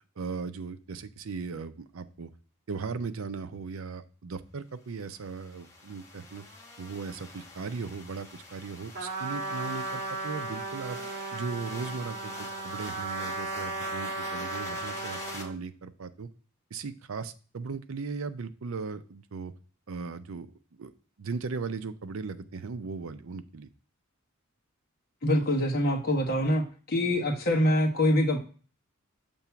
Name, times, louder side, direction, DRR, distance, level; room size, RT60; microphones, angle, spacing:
voice 1, 0.2-2.3 2.7-6.4 6.8-11.0 11.3-16.3 16.7-19.5 19.9-20.5 20.8-20.9 21.2-23.7, right 4 dB, 70° right, 11 dB, 0.5 m, -37 dB
sound 1, 5.0-15.4, left 3 dB, 15° left, 1.0 m, -45 dB
Trumpet, 8.9-15.6, right 3 dB, 40° right, 1.5 m, -36 dB
voice 2, 25.2-28.4, left 1 dB, 45° left, 1 dB, 1.2 m, -25 dB
7.0 x 3.0 x 5.7 m, 0.40 s
head